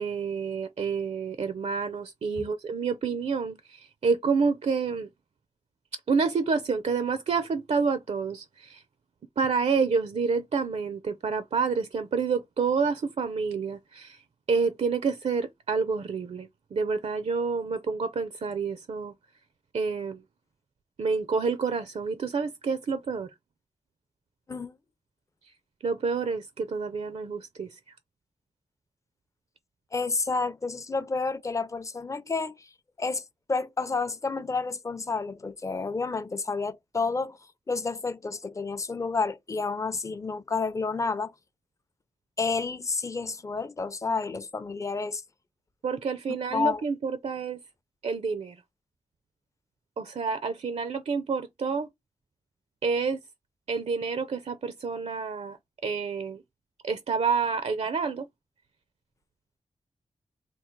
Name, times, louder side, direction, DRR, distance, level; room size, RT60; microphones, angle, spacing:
voice 1, 0.0-5.1 6.1-8.8 9.4-14.2 14.5-19.1 19.7-20.2 21.0-23.3 25.8-27.8 45.8-47.6 48.0-48.6 50.0-51.9 52.8-53.2 53.7-55.6 55.8-56.4 56.8-58.3, right 5 dB, 65° right, 0.5 m, -28 dB
voice 2, 29.9-32.7 33.0-33.2 33.5-37.4 37.7-41.3 42.4-45.2 46.5-46.8, left 4 dB, 25° left, 0.5 m, -30 dB
3.7 x 2.3 x 4.4 m
wide cardioid pair, 125°, 12 cm